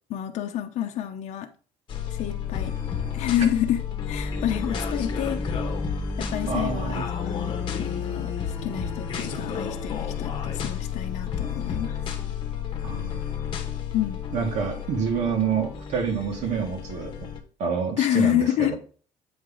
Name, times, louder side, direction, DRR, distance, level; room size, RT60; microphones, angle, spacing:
voice 1, 0.1-1.5 2.1-2.8 3.1-3.8 4.1-5.4 6.2-7.5 7.8-12.0 13.9-14.2 18.0-18.8, left 11 dB, 55° left, 0.8 m, -28 dB
sound 1, 1.9-17.4, left 6 dB, 40° left, 1.1 m, -31 dB
voice 2, 6.5-7.1 12.8-13.2 14.3-17.3 17.6-18.8, right 6 dB, 60° right, 1.8 m, -28 dB
8.0 x 4.9 x 3.9 m
cardioid pair, 165°, 14 cm